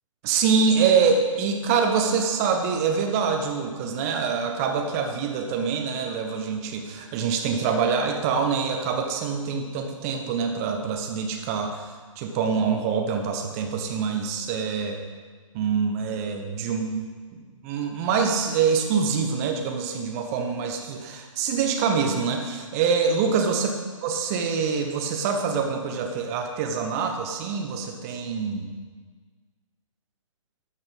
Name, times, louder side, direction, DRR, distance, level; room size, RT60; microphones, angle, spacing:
voice 1, 0.2-11.8 12.2-15.0 15.5-28.7, right 5 dB, 25° right, 3 dB, 1.1 m, -25 dB
13.0 x 5.6 x 5.3 m, 1.5 s
figure-of-eight pair, 125°, 17 cm